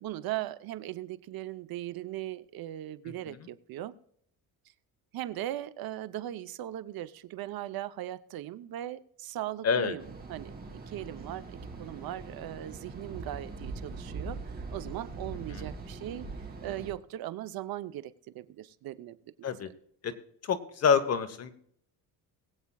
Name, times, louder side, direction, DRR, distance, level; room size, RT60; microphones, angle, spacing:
voice 1, 0.0-4.0 5.1-10.5 10.9-16.3 16.6-19.5, right 13 dB, 65° right, 13 dB, 0.8 m, -39 dB
voice 2, 9.6-9.9 15.5-15.6 19.4-19.7 20.0-20.1 20.4-21.5, left 6 dB, 40° left, 9 dB, 1.1 m, -27 dB
sound 1, 10.0-16.9, right 3 dB, 25° right, 2.9 m, -42 dB
21.5 x 8.6 x 2.3 m, 0.67 s
cardioid pair, 140°, 39 cm